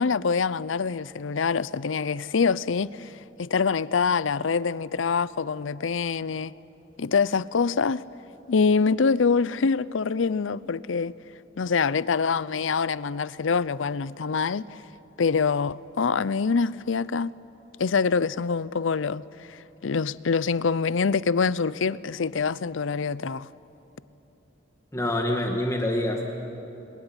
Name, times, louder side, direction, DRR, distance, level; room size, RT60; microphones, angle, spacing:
voice 1, 0.0-3.1 3.4-6.5 7.0-8.1 8.5-11.1 11.6-14.7 15.2-17.3 17.8-19.2 19.5-23.5, left 5 dB, 85° left, 0.6 m, -25 dB
voice 2, 24.9-26.2, left 1 dB, 15° left, 1.8 m, -26 dB
28.5 x 21.5 x 9.9 m
head